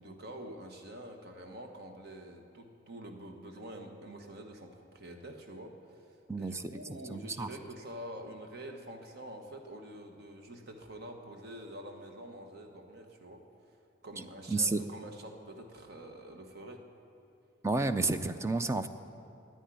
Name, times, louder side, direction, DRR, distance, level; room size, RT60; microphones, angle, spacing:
voice 1, 0.0-6.1 6.3-13.4 14.0-16.8, right 1 dB, 55° right, 4 dB, 1.2 m, -46 dB
voice 2, 6.3-6.7 7.1-7.5 14.5-14.8 17.6-18.9, right 3 dB, 15° right, 10 dB, 0.4 m, -30 dB
10.0 x 9.1 x 9.8 m, 2.6 s
head